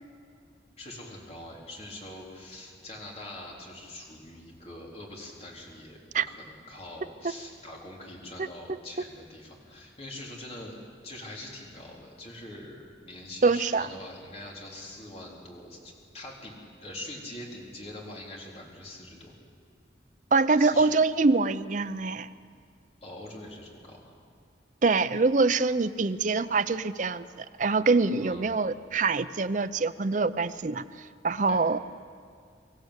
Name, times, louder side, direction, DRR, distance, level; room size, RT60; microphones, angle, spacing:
voice 1, 0.8-6.0 6.3-10.8 11.0-19.3 20.6-20.9 23.0-24.1 28.2-28.6 31.5-31.6, left 1 dB, 35° left, -2 dB, 3.9 m, -43 dB
voice 2, 13.4-13.9 20.3-22.3 24.8-27.3 27.6-31.8, right 3 dB, 45° right, 12 dB, 0.6 m, -24 dB
25.0 x 15.0 x 8.2 m, 2.3 s
head